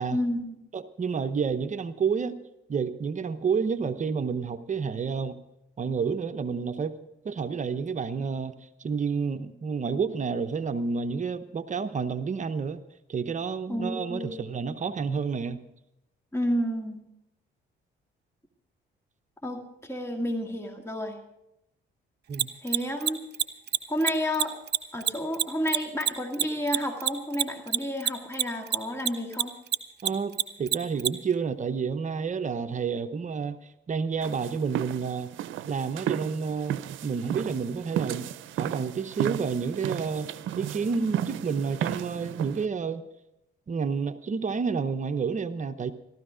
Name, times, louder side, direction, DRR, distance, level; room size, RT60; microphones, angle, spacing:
voice 1, 0.1-0.6 13.7-14.5 16.3-17.0 19.4-21.2 22.6-23.2 23.9-24.6 24.9-29.5, equal, 15° left, 2 dB, 2.1 m, -30 dB
voice 2, 0.7-2.4 2.7-5.4 5.8-7.0 7.2-12.8 13.1-15.6 22.3-22.5 30.0-30.3 30.6-33.6 33.9-35.3 35.7-38.3 38.6-43.1 43.7-45.9, right 5 dB, 40° right, 10 dB, 0.8 m, -30 dB
Mechanisms, 22.3-29.1 29.3-31.1, right 10 dB, 55° right, 1.1 m, -24 dB
sound 1, 34.2-42.7, right 11 dB, 75° right, 0.6 m, -34 dB
15.5 x 13.5 x 5.0 m, 0.85 s
cardioid pair, 90°, 20 cm